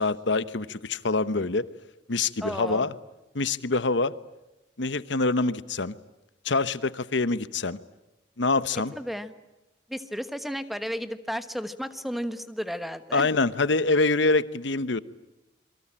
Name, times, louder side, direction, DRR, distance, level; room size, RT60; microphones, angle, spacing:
voice 1, 0.0-1.7 2.1-2.9 3.3-4.1 4.8-5.9 6.4-7.8 8.4-8.9 13.1-15.0, left 3 dB, 70° left, 15 dB, 1.0 m, -25 dB
voice 2, 2.4-2.9 8.9-9.3 9.9-13.3, equal, ahead, 11 dB, 1.2 m, -33 dB
27.5 x 23.5 x 8.8 m, 0.98 s
head